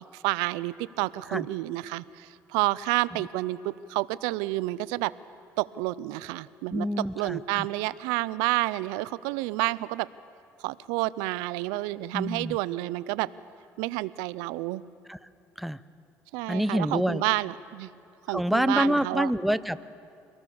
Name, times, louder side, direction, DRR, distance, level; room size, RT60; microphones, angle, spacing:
voice 1, 0.1-5.1 5.6-6.9 7.2-10.1 10.6-13.3 13.8-14.8 16.3-17.9 18.3-19.3, right 19 dB, 90° right, 19 dB, 0.5 m, -29 dB
voice 2, 6.7-7.7 12.1-12.6 15.1-15.2 15.6-15.8 16.5-17.2 18.3-19.9, equal, ahead, 15 dB, 0.6 m, -27 dB
25.0 x 18.5 x 6.9 m, 2.6 s
supercardioid pair, 85°, 7 cm